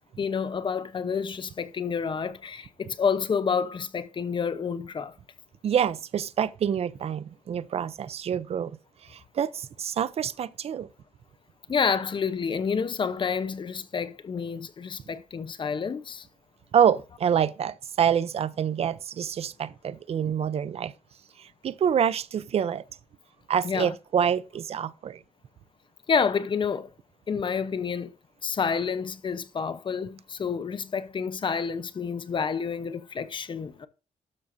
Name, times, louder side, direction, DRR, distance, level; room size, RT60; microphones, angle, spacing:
voice 1, 0.2-5.1 11.7-16.2 23.6-23.9 26.1-26.9 27.3-28.1 28.4-33.9, left 6 dB, 40° left, 0.8 m, -29 dB
voice 2, 5.6-10.9 16.7-20.9 21.4-22.8 23.5-25.2, right 8 dB, 50° right, 0.5 m, -27 dB
12.5 x 6.3 x 2.6 m
cardioid pair, 115°, 13 cm